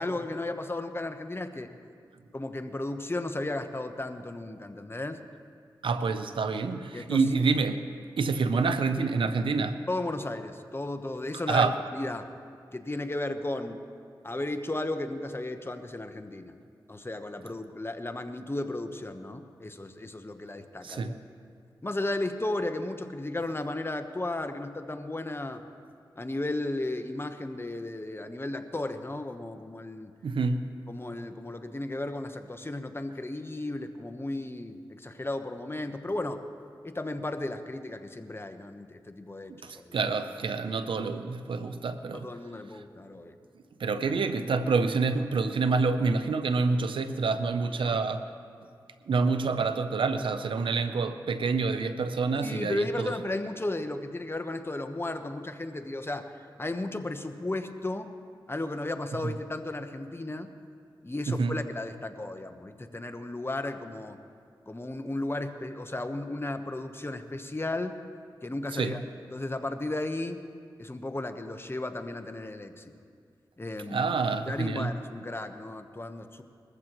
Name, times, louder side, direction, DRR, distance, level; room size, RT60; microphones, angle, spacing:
voice 1, 0.0-1.7 2.3-5.2 6.9-7.2 9.9-12.3 12.7-13.8 14.2-16.6 16.9-21.2 21.8-25.6 26.2-30.1 30.9-36.4 36.8-40.0 42.1-43.3 52.4-56.3 56.6-58.1 58.5-60.5 61.0-64.2 64.7-67.9 68.4-69.0 69.3-70.4 70.8-72.9 73.6-74.1 74.5-76.4, left 2 dB, 30° left, 7 dB, 1.1 m, -34 dB
voice 2, 5.8-7.9 8.2-9.8 11.5-11.8 20.8-21.2 30.2-30.7 39.5-42.3 43.8-48.3 49.1-53.1 59.2-59.3 61.3-61.6 68.7-69.0 73.9-74.9, right 4 dB, 85° right, 10 dB, 0.6 m, -27 dB
21.0 x 14.5 x 3.1 m, 2.2 s
cardioid pair, 40°, 9 cm